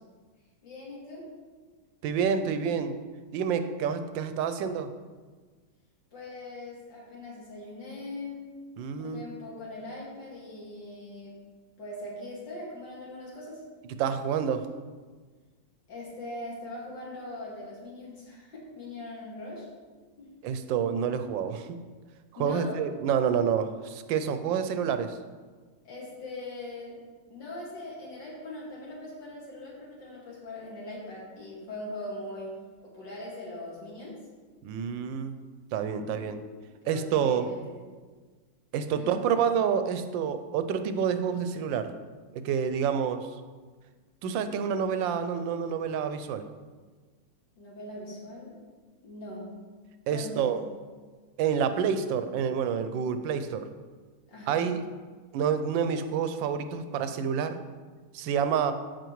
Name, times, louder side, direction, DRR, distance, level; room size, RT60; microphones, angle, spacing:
voice 1, 0.6-1.3 6.1-8.4 9.0-11.3 11.8-13.6 15.9-19.7 20.2-20.3 22.4-22.8 25.8-27.0 27.3-32.5 32.8-34.2 35.9-36.4 36.8-37.8 39.0-39.2 47.6-48.5 49.0-49.6 50.1-50.5 54.3-54.6, left 2 dB, 75° left, -5 dB, 2.8 m, -41 dB
voice 2, 2.0-3.0 3.3-4.9 8.8-9.2 14.0-14.7 20.4-21.8 22.4-25.2 34.6-35.3 35.7-36.4 36.9-37.5 38.7-41.9 42.3-43.3 44.2-46.5 50.1-50.6 51.4-53.7 54.5-54.8 55.3-57.6 58.1-58.7, right 7 dB, 90° right, 10 dB, 1.3 m, -28 dB
12.5 x 4.6 x 3.1 m, 1.4 s
omnidirectional pair, 2.0 m